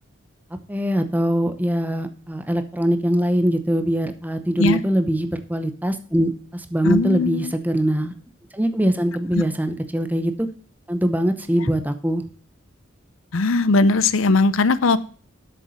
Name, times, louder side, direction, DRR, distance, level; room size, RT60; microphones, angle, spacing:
voice 1, 0.7-8.1 8.5-10.5 10.9-12.2, equal, 10° right, 9 dB, 0.8 m, -22 dB
voice 2, 6.8-7.5 9.3-9.4 13.3-15.0, left 3 dB, 85° left, 16 dB, 0.7 m, -19 dB
8.3 x 6.9 x 6.3 m, 0.43 s
head